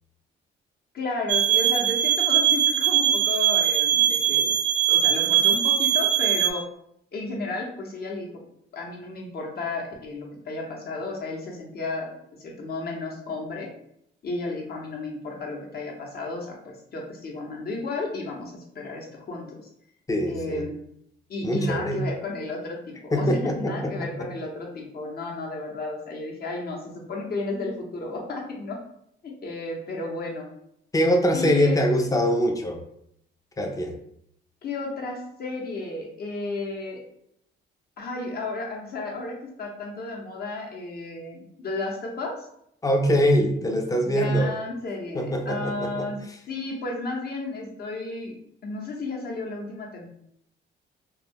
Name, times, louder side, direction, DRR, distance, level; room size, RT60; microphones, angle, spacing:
voice 1, 0.9-4.5 4.9-6.6 7.1-8.3 8.7-12.1 12.4-13.7 14.2-19.7 20.3-20.7 21.3-28.8 29.2-30.5 31.3-31.8 32.1-32.2 34.6-37.0 38.0-42.3 44.0-46.2 46.5-48.3 48.6-50.1, left 3 dB, 50° left, 0 dB, 0.8 m, -33 dB
sound 1, 1.3-6.5, right 10 dB, 60° right, 0.4 m, -21 dB
voice 2, 20.1-20.6 21.4-22.0 23.1-24.3 30.9-32.8 33.6-33.9 42.8-44.6 45.1-46.1, equal, 15° left, 3 dB, 0.5 m, -23 dB
2.3 x 2.1 x 3.4 m, 0.73 s
cardioid pair, 90°, 20 cm